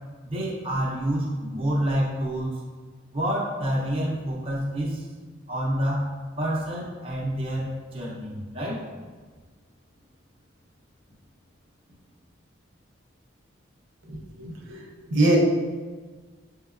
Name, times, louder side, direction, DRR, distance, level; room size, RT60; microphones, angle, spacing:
voice 1, 0.2-2.6 3.1-5.1 5.5-6.1 6.4-8.8, right 1 dB, 30° right, -5 dB, 0.8 m, -28 dB
voice 2, 14.0-15.4, right 1 dB, 75° right, -2 dB, 0.7 m, -25 dB
5.8 x 2.9 x 2.5 m, 1.4 s
head